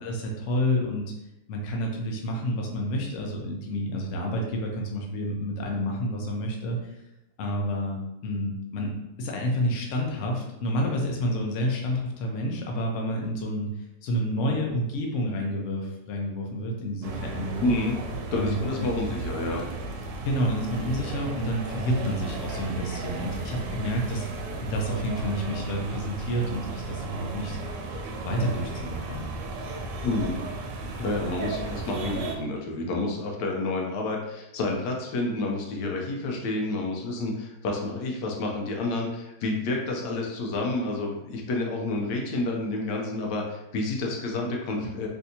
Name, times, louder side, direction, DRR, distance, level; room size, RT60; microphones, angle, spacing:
voice 1, 0.0-1.1 1.5-7.0 7.4-17.7 18.3-18.9 20.2-27.6 28.1-29.3, equal, 65° left, 0 dB, 0.8 m, -29 dB
sound 1, 17.0-32.4, right 3 dB, 90° right, 1.2 m, -35 dB
voice 2, 17.6-18.0 18.3-19.7 30.0-30.4 31.0-45.1, left 2 dB, 85° left, 0 dB, 1.2 m, -29 dB
3.3 x 2.6 x 2.7 m, 0.92 s
omnidirectional pair, 1.9 m